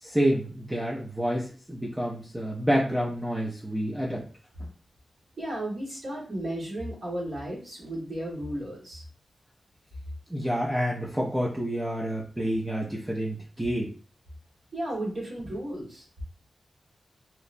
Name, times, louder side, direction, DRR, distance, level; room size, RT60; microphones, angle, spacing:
voice 1, 0.0-4.3 10.3-13.9, equal, 10° right, -4 dB, 0.4 m, -28 dB
voice 2, 5.4-9.0 14.7-16.0, right 1 dB, 50° right, -5 dB, 1.2 m, -34 dB
2.7 x 2.0 x 2.5 m, 0.39 s
wide cardioid pair, 125°, 0 cm